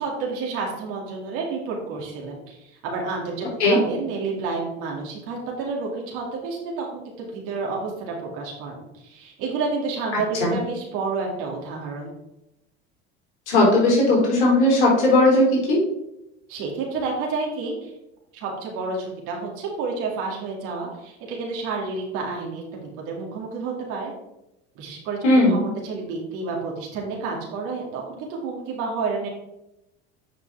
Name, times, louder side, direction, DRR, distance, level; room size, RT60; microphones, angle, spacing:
voice 1, 0.0-12.1 16.5-17.9 18.3-24.1 24.8-29.3, right 4 dB, 65° right, -1 dB, 2.4 m, -30 dB
voice 2, 13.5-15.8 25.2-25.7, left 1 dB, 90° left, -2 dB, 3.2 m, -17 dB
9.6 x 5.3 x 3.5 m, 0.88 s
hypercardioid pair, 85°, 33 cm